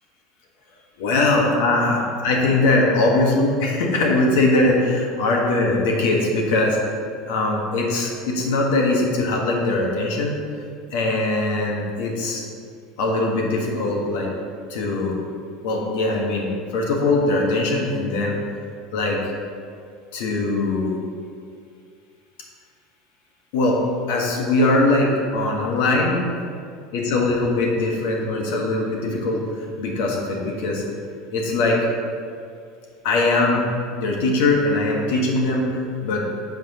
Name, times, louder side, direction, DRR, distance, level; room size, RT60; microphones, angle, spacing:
voice 1, 1.0-6.8 7.3-10.3 10.9-12.4 13.0-14.3 14.7-15.1 15.6-18.4 18.9-19.2 20.1-20.9 23.5-23.8 24.1-26.2 26.9-29.4 29.8-30.8 31.3-31.8 33.0-33.6 34.0-36.3, left 2 dB, 80° left, -1 dB, 1.4 m, -21 dB
10.5 x 5.9 x 3.0 m, 2.3 s
supercardioid pair, 125°, 0 cm